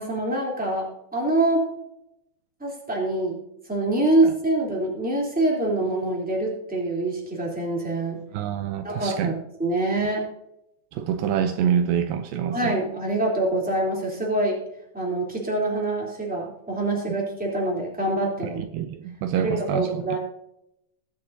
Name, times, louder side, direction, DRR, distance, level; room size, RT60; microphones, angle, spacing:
voice 1, 0.0-1.7 2.6-3.4 3.7-8.2 8.8-10.2 12.5-14.6 14.9-18.6 19.3-20.2, right 2 dB, 5° right, -3 dB, 2.6 m, -25 dB
voice 2, 8.3-9.3 10.9-12.7 18.6-20.2, right 8 dB, 80° right, 9 dB, 2.2 m, -26 dB
20.5 x 6.9 x 2.7 m, 0.83 s
omnidirectional pair, 4.2 m